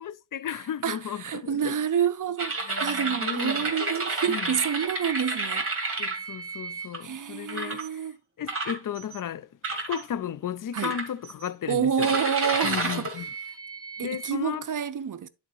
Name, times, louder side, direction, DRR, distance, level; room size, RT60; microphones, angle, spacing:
voice 1, 0.0-1.8 2.7-3.7 4.3-4.5 6.0-8.1 8.4-12.2 12.6-13.3 14.0-14.6, left 9 dB, 50° left, 0.5 m, -34 dB
voice 2, 0.8-5.7 7.0-8.1 10.7-11.0 11.7-13.1 14.0-15.3, right 8 dB, 45° right, 0.6 m, -28 dB
sound 1, 2.4-7.0 7.5-7.9 8.5-9.2 9.6-10.0 10.8-11.5 12.0-14.3, right 3 dB, 30° right, 1.6 m, -31 dB
11.0 x 4.1 x 3.0 m
wide cardioid pair, 100°, 45 cm